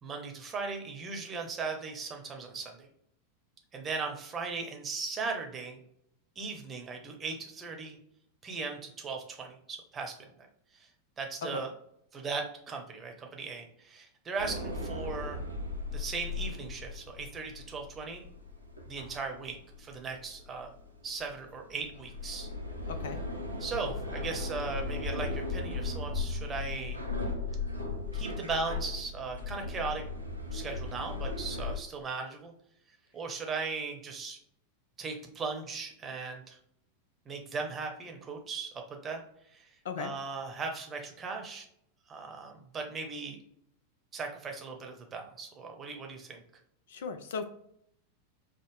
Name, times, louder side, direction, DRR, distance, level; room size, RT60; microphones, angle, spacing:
voice 1, 0.0-2.9 3.7-5.8 6.4-8.0 8.4-10.2 10.7-10.9 11.2-11.7 12.1-15.4 15.9-18.2 18.9-20.7 21.0-22.5 23.6-27.0 28.1-30.0 30.5-32.5 33.1-34.4 35.0-36.6 37.3-39.2 39.5-39.7 40.0-41.6 42.1-43.4 44.1-46.4, right 4 dB, 20° right, 2 dB, 0.8 m, -38 dB
sound 1, 14.4-31.8, left 3 dB, 90° right, 0.6 m, -37 dB
voice 2, 22.9-23.2 39.8-40.1 46.9-47.5, left 5 dB, 60° left, 9 dB, 0.4 m, -37 dB
5.3 x 2.1 x 3.2 m, 0.71 s
figure-of-eight pair, 90°, 0 cm